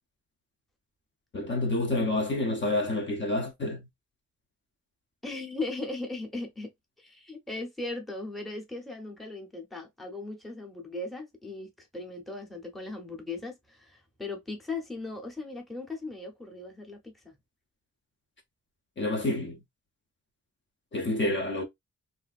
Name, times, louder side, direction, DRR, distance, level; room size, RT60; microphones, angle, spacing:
voice 1, 1.3-3.9 19.0-19.6 20.9-21.6, left 2 dB, 40° left, 0.7 m, -28 dB
voice 2, 5.2-6.7 7.0-17.4, left 2 dB, ahead, 0.8 m, -38 dB
3.3 x 2.6 x 2.3 m
wide cardioid pair, 125°, 29 cm